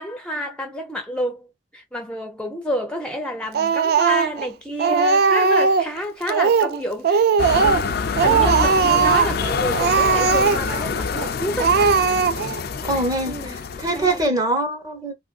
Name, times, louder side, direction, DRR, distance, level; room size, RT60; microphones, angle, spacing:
voice 1, 0.0-7.2 7.6-11.8 13.3-13.6 13.9-14.2, equal, 5° left, 0.6 m, -29 dB
Speech, 3.5-4.5 4.8-5.9 6.3-6.8 7.0-7.9 8.2-9.4 9.7-10.8 11.2-11.3 11.6-12.6, right 5 dB, 60° right, 0.3 m, -18 dB
sound 1, 7.4-14.3, left 5 dB, 60° left, 0.4 m, -26 dB
voice 2, 12.8-15.1, right 2 dB, 20° right, 0.9 m, -23 dB
3.2 x 2.5 x 2.3 m
head